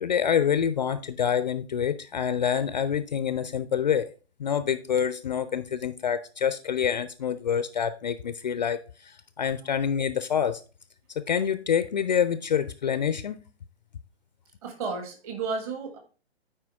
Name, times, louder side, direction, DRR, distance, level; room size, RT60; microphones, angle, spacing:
voice 1, 0.0-4.1 4.4-10.6 11.3-13.4, left 8 dB, 45° left, 0.4 m, -26 dB
voice 2, 14.6-16.0, right 4 dB, 35° right, 1.7 m, -32 dB
8.9 x 4.4 x 3.4 m
figure-of-eight pair, 125°, 33 cm